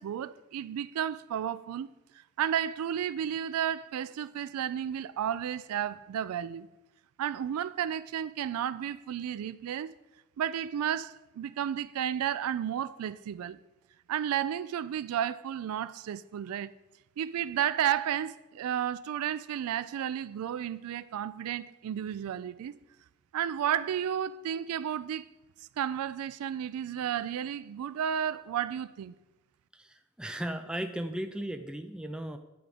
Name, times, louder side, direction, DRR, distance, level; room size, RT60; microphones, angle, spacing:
voice 1, 0.0-1.9 2.2-6.7 7.2-9.9 10.4-13.6 14.1-16.7 17.2-22.7 23.3-25.2 25.8-29.1, right 9 dB, 85° right, 0.3 m, -32 dB
voice 2, 29.7-32.4, right 1 dB, 5° right, 0.3 m, -36 dB
9.5 x 3.5 x 5.1 m
head